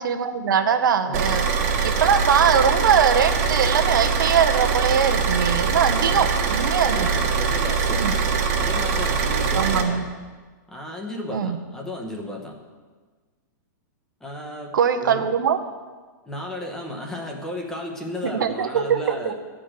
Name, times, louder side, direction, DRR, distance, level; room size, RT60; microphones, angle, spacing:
voice 1, 0.0-1.5 1.8-7.1 8.0-8.1 9.6-10.0 11.3-11.6 14.7-15.6 18.2-19.3, right 7 dB, 90° right, 6 dB, 0.9 m, -21 dB
Car / Idling, 1.1-9.8, right 5 dB, 45° right, 1.4 m, -22 dB
voice 2, 6.9-8.3 8.6-10.1 10.7-12.6 14.2-15.3 16.2-19.3, left 1 dB, 5° left, 0 dB, 0.9 m, -34 dB
11.0 x 5.1 x 7.4 m, 1.4 s
hypercardioid pair, 170°, 10 cm